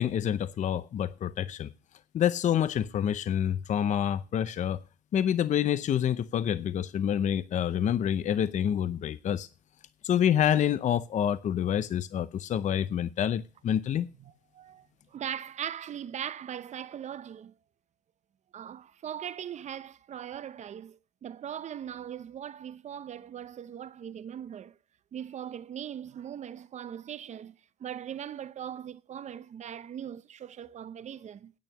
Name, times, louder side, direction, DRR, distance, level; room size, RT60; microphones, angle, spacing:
voice 1, 0.0-1.7 2.1-4.8 5.1-9.5 10.0-14.1, left 9 dB, 45° left, 0.6 m, -27 dB
voice 2, 14.2-17.5 18.5-24.8 25.1-31.5, right 9 dB, 45° right, 0.7 m, -40 dB
9.5 x 8.7 x 6.0 m
cardioid pair, 110°, 17 cm